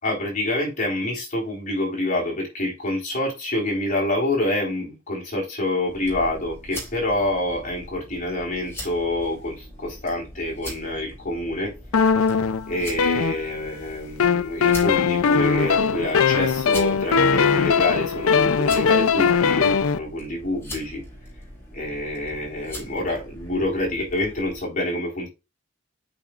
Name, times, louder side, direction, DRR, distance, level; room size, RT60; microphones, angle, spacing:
voice 1, 0.0-11.7 12.7-21.0 21.7-25.3, left 1 dB, 35° left, 3.9 m, -27 dB
sound 1, 5.9-24.6, left 1 dB, 10° left, 3.1 m, -41 dB
sound 2, 11.9-13.8 14.2-20.0, left 6 dB, 80° left, 0.5 m, -20 dB
8.5 x 4.9 x 2.4 m
head